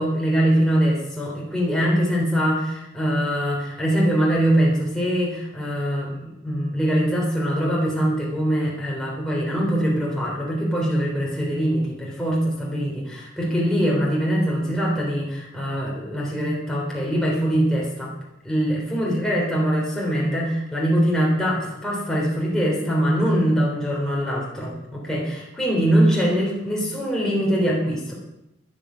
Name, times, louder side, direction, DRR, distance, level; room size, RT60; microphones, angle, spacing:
voice 1, 0.0-18.1 18.4-28.1, equal, 5° left, -5 dB, 3.6 m, -23 dB
13.5 x 11.0 x 6.3 m, 0.89 s
head